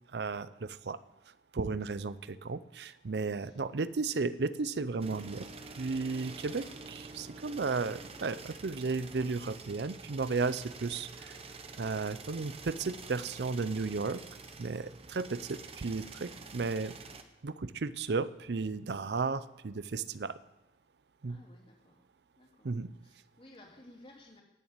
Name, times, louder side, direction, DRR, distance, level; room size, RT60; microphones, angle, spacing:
voice 1, 0.1-1.0 1.5-5.5 5.8-11.4 11.8-14.2 14.6-16.9 17.4-20.4 21.2-21.4 22.6-22.9, right 4 dB, 70° right, 16 dB, 0.5 m, -34 dB
sound 1, 5.0-17.2, right 4 dB, 35° right, 1.0 m, -47 dB
voice 2, 16.4-16.8 21.3-22.0 22.4-22.7 23.0-24.4, left 1 dB, 30° left, 0 dB, 2.8 m, -57 dB
14.0 x 7.2 x 8.8 m, 1.0 s
head